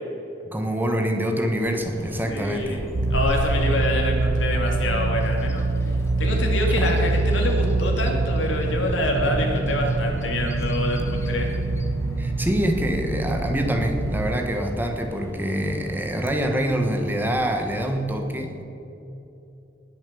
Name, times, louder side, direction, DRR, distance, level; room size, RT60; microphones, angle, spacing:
voice 1, 0.5-2.8 6.8-7.1 12.2-18.6, equal, 10° right, 3 dB, 1.3 m, -25 dB
Bird vocalization bird call bird song, 1.6-18.1, equal, 15° left, 1.0 m, -39 dB
voice 2, 2.3-2.8 3.1-5.9 6.2-11.5, left 1 dB, 85° left, 1 dB, 2.8 m, -26 dB
sound 1, 2.9-14.3, right 2 dB, 65° right, 0.7 m, -24 dB
19.5 x 6.9 x 6.9 m, 2.9 s
head